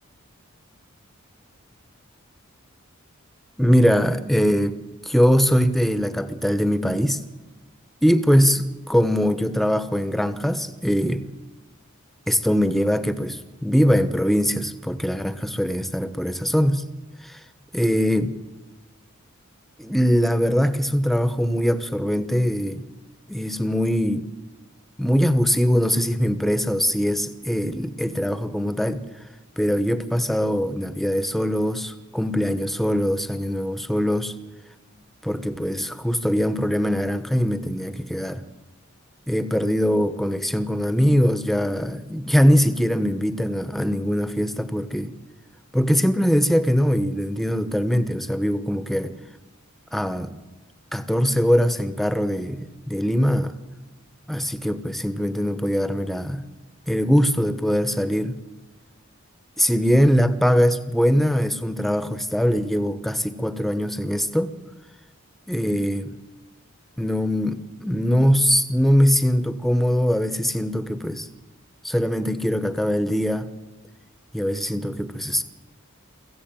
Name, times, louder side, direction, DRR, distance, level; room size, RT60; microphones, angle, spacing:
voice 1, 3.6-4.8 5.0-7.2 8.0-11.3 12.3-16.9 17.2-17.4 17.7-18.4 19.8-22.8 23.3-24.2 25.0-29.1 29.6-34.3 35.2-38.4 39.3-45.1 45.7-49.2 49.9-50.4 50.9-53.6 54.3-56.4 56.9-58.4 59.6-64.5 65.5-66.1 67.0-71.3 71.8-73.5 74.3-75.4, equal, ahead, 1.0 m, -22 dB
23.5 x 15.0 x 8.9 m
head